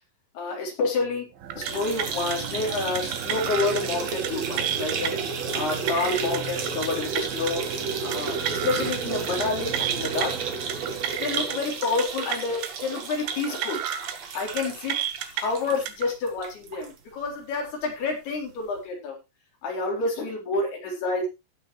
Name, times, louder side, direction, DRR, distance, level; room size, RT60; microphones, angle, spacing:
voice 1, 0.3-1.3 1.6-5.1 5.5-7.6 8.0-10.3 11.2-13.8 14.3-15.0 15.3-19.2 19.6-21.3, left 3 dB, 65° left, 0 dB, 5.9 m, -28 dB
sound 1, 1.3-11.8, right 8 dB, 65° right, 3.1 m, -38 dB
sound 2, 1.5-16.9 17.3-17.4 17.7-17.8 18.8-18.9, right 5 dB, 50° right, 2.3 m, -33 dB
sound 3, 1.5-1.7 2.0-2.4 3.0-3.8 4.1-4.3 4.6-5.1 5.5-6.4 6.7-6.9 7.1-7.5 8.1-9.0 9.2-9.5 9.7-10.3 10.7-11.6 11.8-12.0 12.3-12.7 13.3-14.1 14.4-14.6 14.9-15.4 15.9-16.1, right 10 dB, 85° right, 3.5 m, -31 dB
15.5 x 8.9 x 3.2 m, 0.25 s
omnidirectional pair, 4.9 m